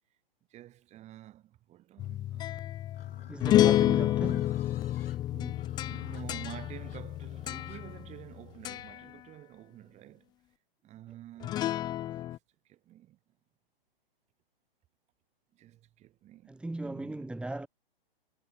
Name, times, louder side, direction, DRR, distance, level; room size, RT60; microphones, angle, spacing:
voice 1, 0.5-2.7 5.3-10.3 10.8-11.7 12.2-12.4 12.6-13.2 15.5-17.3, right 14 dB, 25° right, 6.4 m, -49 dB
sound 1, 2.0-8.3 8.7-9.0 11.4-12.4, left 13 dB, 15° left, 0.6 m, -29 dB
Livestock farm animals working animals, 2.9-9.0, left 8 dB, 70° left, 6.6 m, -56 dB
voice 2, 3.3-4.6 16.5-17.7, right 2 dB, 5° right, 3.1 m, -37 dB
hypercardioid pair, 135°, 29 cm